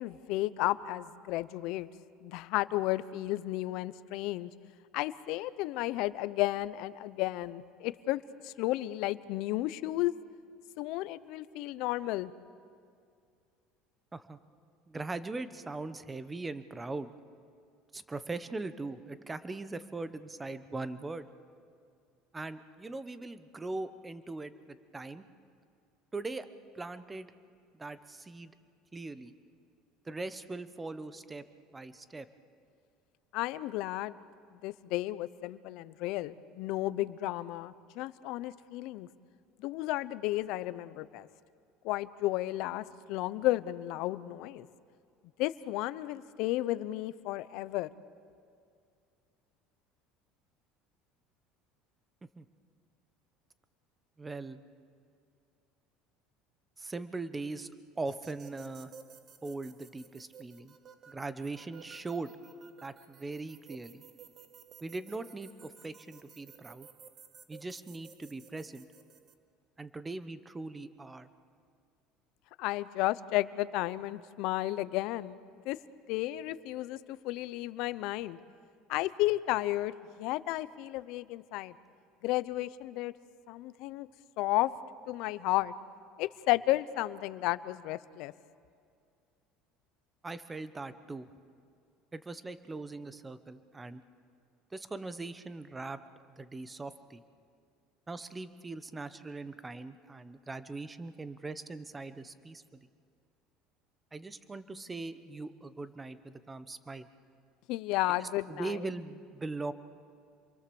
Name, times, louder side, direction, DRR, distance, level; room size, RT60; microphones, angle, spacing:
voice 1, 0.0-1.9 2.2-4.5 4.9-10.1 10.8-12.3 33.3-34.2 34.6-39.1 39.6-41.3 41.8-44.7 45.4-47.9 72.6-75.4 75.6-75.8 76.1-78.4 78.9-81.7 82.2-83.1 83.5-84.1 84.4-84.7 85.1-85.7 86.2-88.3 107.7-108.8, left 17 dB, 65° left, 16 dB, 0.7 m, -33 dB
voice 2, 14.9-17.1 17.9-21.3 22.3-25.2 26.1-26.5 26.7-27.3 27.8-28.5 28.9-29.3 30.0-31.4 31.7-32.3 52.4-52.5 54.2-54.6 56.8-58.9 59.4-60.8 61.1-62.3 62.8-64.0 64.8-66.9 67.5-68.9 69.8-71.3 90.2-91.3 92.1-94.0 94.7-96.0 96.4-97.2 98.1-102.8 104.1-107.1 108.2-109.7, right 3 dB, 15° right, 13 dB, 1.0 m, -40 dB
sound 1, 58.1-69.3, right 7 dB, 35° right, 1.3 m, -55 dB
27.5 x 23.0 x 7.1 m, 2.3 s
cardioid pair, 130°, 0 cm